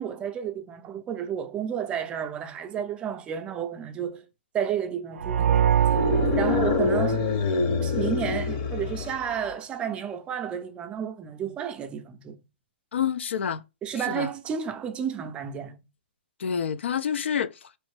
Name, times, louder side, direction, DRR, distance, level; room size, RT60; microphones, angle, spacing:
voice 1, 0.0-4.3 4.5-6.1 6.4-7.2 7.8-12.4 13.8-15.8, right 8 dB, 15° right, 0.4 m, -31 dB
sound 1, 5.2-8.0, right 9 dB, 90° right, 0.4 m, -25 dB
sound 2, 5.8-9.5, left 4 dB, 35° left, 0.7 m, -26 dB
voice 2, 12.9-13.6 14.0-14.3 16.4-17.6, left 8 dB, 80° left, 0.4 m, -28 dB
4.1 x 3.1 x 3.2 m
hypercardioid pair, 145°, 6 cm